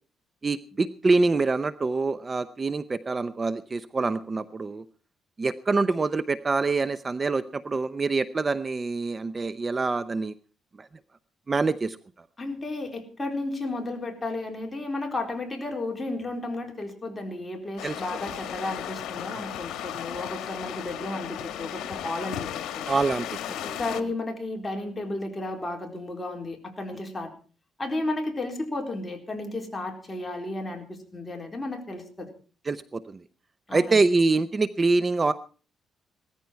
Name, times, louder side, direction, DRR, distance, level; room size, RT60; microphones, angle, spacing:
voice 1, 0.4-4.8 5.4-10.3 10.8-10.9 11.5-12.0 17.8-18.0 22.9-23.3 23.7-23.8 32.7-33.2 33.7-35.3, right 3 dB, 30° right, 14 dB, 0.6 m, -25 dB
voice 2, 12.4-22.8 23.6-27.3 27.8-32.3 33.7-34.0, left 2 dB, 20° left, 2 dB, 4.2 m, -33 dB
sound 1, 17.8-24.0, left 10 dB, 85° left, 1.3 m, -35 dB
17.5 x 14.0 x 4.5 m, 0.38 s
cardioid pair, 90°, 0 cm